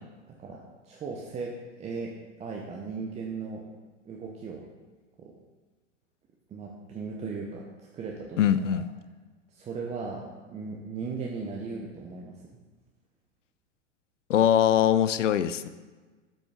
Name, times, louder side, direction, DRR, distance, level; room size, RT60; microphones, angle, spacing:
voice 1, 0.4-2.1 2.4-3.6 4.0-4.6 5.2-5.4 6.5-7.7 7.9-8.8 9.5-12.4, right 4 dB, 20° right, -1 dB, 0.7 m, -37 dB
voice 2, 8.4-8.8 14.3-15.7, left 10 dB, 80° left, 13 dB, 0.5 m, -22 dB
7.8 x 6.0 x 3.5 m, 1.3 s
hypercardioid pair, 100°, 36 cm